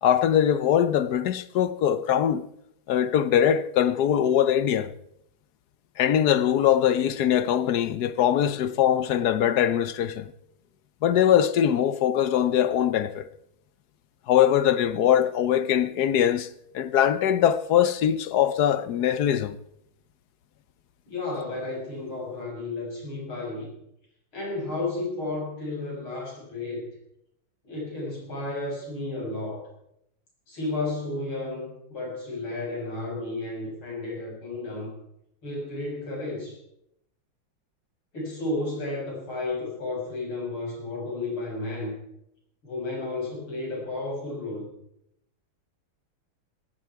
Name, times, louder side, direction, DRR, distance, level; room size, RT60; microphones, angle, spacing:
voice 1, 0.0-2.4 2.9-4.9 6.0-10.3 11.0-13.3 14.3-16.5 16.7-19.5, left 10 dB, 65° left, 1.1 m, -22 dB
voice 2, 21.1-23.7 24.3-26.9 27.6-29.7 30.5-34.9 35.4-36.6 38.1-42.0 42.6-44.7, left 2 dB, 90° left, 7.1 m, -32 dB
17.5 x 15.0 x 4.7 m
omnidirectional pair, 2.2 m